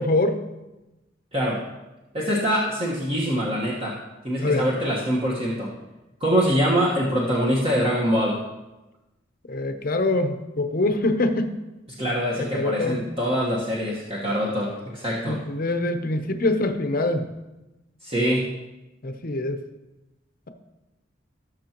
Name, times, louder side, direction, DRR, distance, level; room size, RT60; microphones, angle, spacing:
voice 1, 0.1-0.4 4.4-4.6 9.5-11.6 12.5-13.0 15.3-17.3 19.0-19.6, left 2 dB, 50° left, 8 dB, 0.8 m, -24 dB
voice 2, 1.3-1.6 2.1-5.7 6.2-8.4 11.9-15.4 18.0-18.5, equal, 30° right, -5 dB, 1.4 m, -24 dB
18.0 x 6.7 x 3.0 m, 1.0 s
head